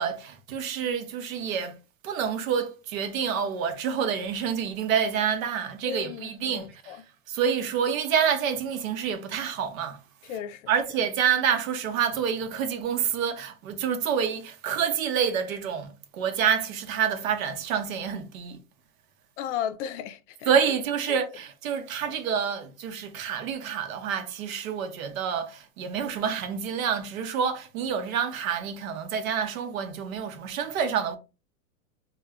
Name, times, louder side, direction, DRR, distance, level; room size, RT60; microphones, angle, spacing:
voice 1, 0.0-1.7 2.0-7.0 7.3-10.0 10.7-18.6 20.5-31.2, right 7 dB, 70° right, 0.6 m, -28 dB
voice 2, 5.8-7.0 10.2-10.7 19.4-20.5 21.1-21.2, left 9 dB, 60° left, 0.5 m, -35 dB
2.2 x 2.1 x 3.4 m
supercardioid pair, 150°, 42 cm